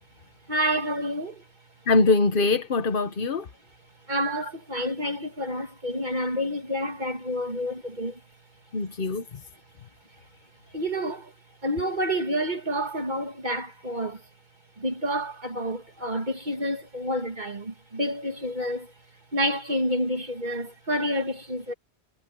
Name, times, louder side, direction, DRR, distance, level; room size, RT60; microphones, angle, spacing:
voice 1, 0.5-1.4 4.1-8.2 10.7-11.3 11.6-14.2 14.8-18.9 19.3-21.7, equal, 45° right, 2.2 m, -29 dB
voice 2, 1.9-3.5 8.7-9.4, left 3 dB, 55° left, 1.2 m, -23 dB
omnidirectional pair, 1.1 m